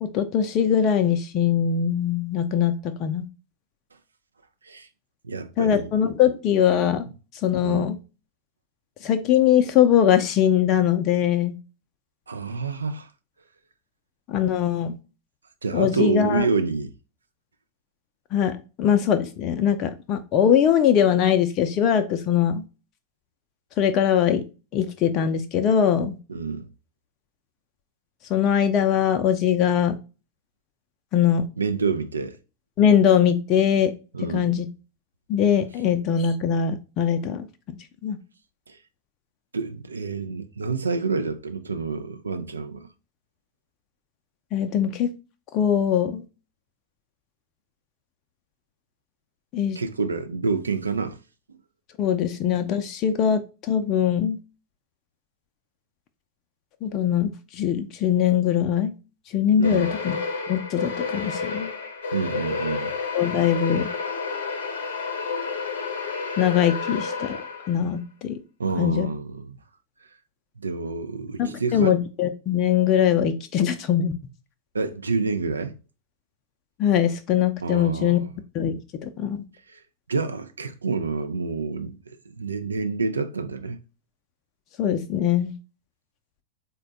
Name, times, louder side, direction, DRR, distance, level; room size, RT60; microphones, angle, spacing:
voice 1, 0.0-3.3 5.6-7.0 7.4-8.0 9.0-11.6 14.3-15.0 15.7-16.5 18.3-22.6 23.8-24.4 24.7-26.2 28.3-29.9 31.1-31.4 32.8-33.9 34.2-34.7 35.3-37.5 38.0-38.2 44.5-45.1 45.5-46.2 49.5-49.8 52.0-54.4 56.8-58.9 59.3-60.2 60.5-61.7 63.1-63.9 66.4-67.4 67.7-68.4 68.8-69.1 71.4-74.1 76.8-78.2 78.5-79.4 84.8-85.5, left 9 dB, 35° left, 0.4 m, -21 dB
voice 2, 5.3-5.9 7.6-7.9 12.3-13.1 15.6-16.9 26.3-26.7 31.6-32.3 34.1-34.5 39.5-42.9 49.8-51.2 59.6-59.9 62.1-62.9 68.6-69.6 70.6-72.0 74.7-75.7 77.6-78.3 80.1-83.8, right 4 dB, 75° right, 0.4 m, -28 dB
sound 1, 59.6-67.9, left 4 dB, 65° left, 0.8 m, -30 dB
4.0 x 2.2 x 3.8 m
figure-of-eight pair, 90°, 0 cm